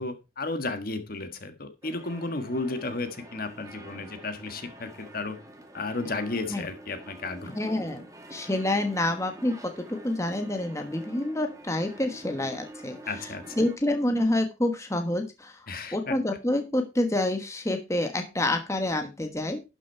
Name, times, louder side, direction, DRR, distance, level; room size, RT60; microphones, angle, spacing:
voice 1, 0.0-5.4 5.7-7.5 13.1-13.5 15.7-16.2, left 3 dB, 50° left, 8 dB, 1.4 m, -33 dB
sound 1, 1.8-13.8, right 1 dB, 15° right, 1.9 m, -46 dB
voice 2, 7.5-8.0 8.3-9.5 9.9-13.0 13.6-15.6 15.9-19.6, left 1 dB, 15° left, 5 dB, 1.3 m, -27 dB
12.0 x 6.2 x 4.5 m, 0.27 s
head